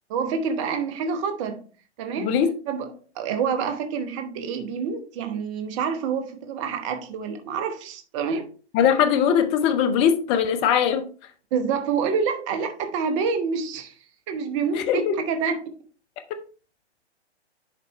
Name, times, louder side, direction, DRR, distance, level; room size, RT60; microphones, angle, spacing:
voice 1, 0.1-1.6 2.0-2.3 2.7-8.5 11.5-13.9 14.3-15.7, right 6 dB, 25° right, 1.0 m, -27 dB
voice 2, 2.2-2.5 8.7-11.0 14.7-15.1, left 8 dB, 15° left, 0.7 m, -20 dB
11.0 x 4.1 x 3.1 m
figure-of-eight pair, 130°, 34 cm